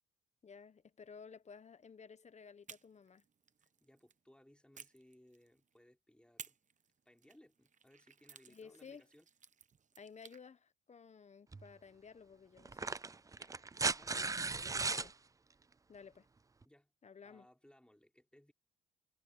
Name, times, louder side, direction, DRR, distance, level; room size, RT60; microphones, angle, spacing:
voice 1, 0.4-3.2 8.5-9.0 10.0-12.9 14.8-15.1 15.9-16.3 17.0-17.5, left 6 dB, 35° left, 1.3 m, -55 dB
sound 1, 2.6-4.2 4.7-5.8 6.4-10.4, right 6 dB, 40° right, 1.0 m, -58 dB
voice 2, 3.6-6.6 7.1-9.3 13.3-13.5 13.9-14.2 14.5-15.2 16.6-16.9 17.2-18.5, left 1 dB, 5° left, 5.6 m, -64 dB
sound 2, 11.5-11.6 12.6-15.1 16.6-16.7, right 4 dB, 15° right, 0.5 m, -36 dB
cardioid pair, 90°, 20 cm